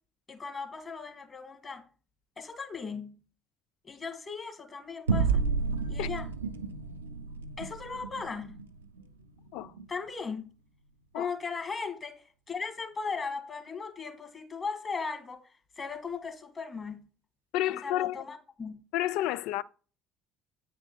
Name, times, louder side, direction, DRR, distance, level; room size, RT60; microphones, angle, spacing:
voice 1, 0.3-1.8 2.4-3.2 3.8-5.5 5.9-6.3 7.6-8.6 9.9-10.5 11.1-17.0 17.7-18.8, left 5 dB, 30° left, 2.1 m, -37 dB
sound 1, 5.1-9.9, right 5 dB, 80° right, 0.6 m, -32 dB
voice 2, 17.5-18.2 18.9-19.6, left 14 dB, 60° left, 0.3 m, -30 dB
8.8 x 4.7 x 4.4 m
figure-of-eight pair, 55°, 0 cm